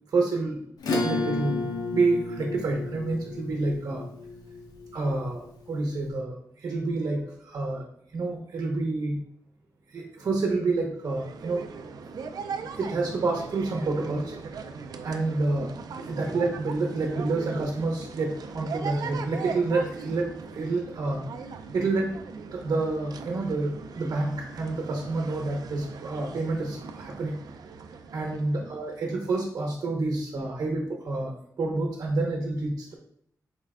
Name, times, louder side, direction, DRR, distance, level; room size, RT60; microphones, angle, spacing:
voice 1, 0.1-0.6 1.0-1.6 1.9-4.0 4.9-9.2 9.9-11.7 12.1-12.3 12.7-14.3 14.7-14.8 15.0-15.7 16.1-22.1 22.5-27.4 28.1-32.9, right 3 dB, 65° right, 0 dB, 0.8 m, -28 dB
Acoustic guitar / Strum, 0.8-5.7, left 3 dB, 80° left, 0.8 m, -32 dB
sound 1, 11.0-29.5, right 5 dB, 85° right, 0.4 m, -40 dB
4.3 x 3.3 x 3.6 m, 0.67 s
wide cardioid pair, 110°, 7 cm